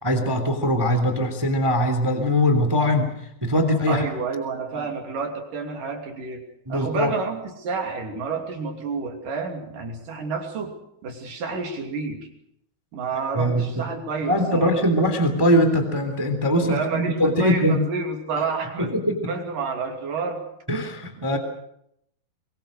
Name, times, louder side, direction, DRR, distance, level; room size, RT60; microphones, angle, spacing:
voice 1, 0.0-3.1 3.4-4.0 6.7-7.1 13.3-13.9 14.3-17.8 18.3-18.4 18.8-19.2 20.7-21.4, equal, 5° right, 7 dB, 2.2 m, -21 dB
voice 2, 3.9-6.4 6.7-10.8 11.0-12.3 12.9-14.8 16.6-20.5 21.3-21.4, right 4 dB, 55° right, 3 dB, 4.2 m, -30 dB
23.5 x 23.5 x 6.6 m, 0.75 s
omnidirectional pair, 4.6 m